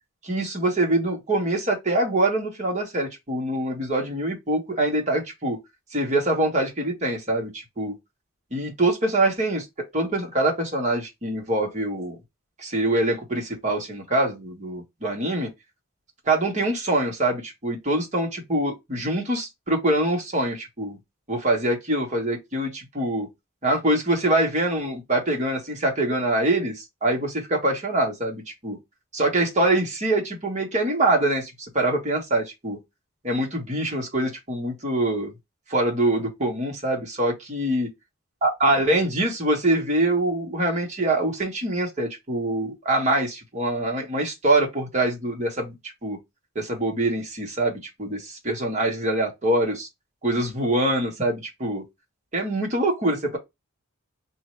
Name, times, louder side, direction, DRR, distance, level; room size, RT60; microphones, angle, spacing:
voice 1, 0.2-5.6 5.9-7.9 8.5-9.7 9.9-12.2 12.6-15.5 16.3-21.0 21.3-23.3 23.6-28.8 29.1-32.8 33.2-35.3 35.7-37.9 38.4-45.7 46.0-46.2 46.5-49.9 50.2-51.8 52.3-53.4, right 1 dB, 35° right, 1.2 m, -24 dB
3.1 x 2.7 x 4.3 m
head